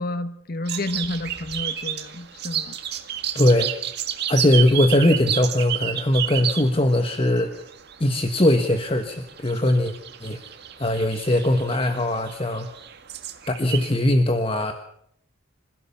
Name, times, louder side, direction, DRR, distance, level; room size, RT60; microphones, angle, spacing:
voice 1, 0.0-2.8, left 2 dB, 50° left, 1.2 m, -30 dB
sound 1, 0.7-14.0, right 10 dB, 55° right, 2.0 m, -31 dB
voice 2, 3.3-3.7 4.3-7.5 8.0-9.9 10.2-10.4 10.8-12.7 13.5-14.7, left 1 dB, 30° left, 1.4 m, -20 dB
26.5 x 16.0 x 7.2 m
head